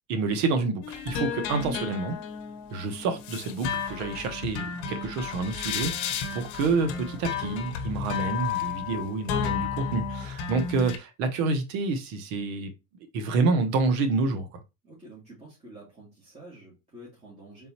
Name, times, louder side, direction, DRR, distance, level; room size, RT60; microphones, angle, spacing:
voice 1, 0.1-2.2 2.7-12.7 13.1-14.6, right 4 dB, 70° right, 1.2 m, -28 dB
sound 1, 0.8-11.0, left 7 dB, 60° left, 0.8 m, -33 dB
voice 2, 14.8-17.7, right 1 dB, 15° right, 2.1 m, -48 dB
4.1 x 3.7 x 2.9 m
supercardioid pair, 125°, 40 cm